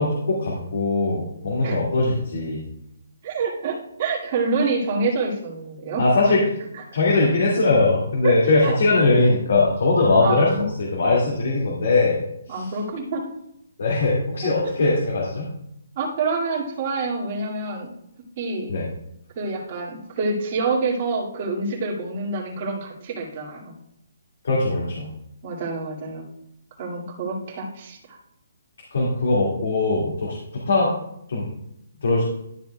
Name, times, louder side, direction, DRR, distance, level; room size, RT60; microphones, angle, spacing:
voice 1, 0.0-2.6 6.0-6.5 6.9-12.2 12.5-12.7 13.8-15.5 18.7-18.9 24.4-25.1 28.9-30.9 31.3-31.5 32.0-32.2, left 2 dB, 70° left, -4 dB, 2.2 m, -20 dB
voice 2, 3.2-6.0 8.2-8.3 8.6-8.7 10.2-10.7 12.5-13.2 16.0-17.9 18.4-18.7 19.4-23.7 25.4-26.2 26.8-28.2, right 3 dB, 35° right, -4 dB, 2.3 m, -27 dB
12.0 x 7.1 x 2.3 m, 0.79 s
hypercardioid pair, 165°, 0 cm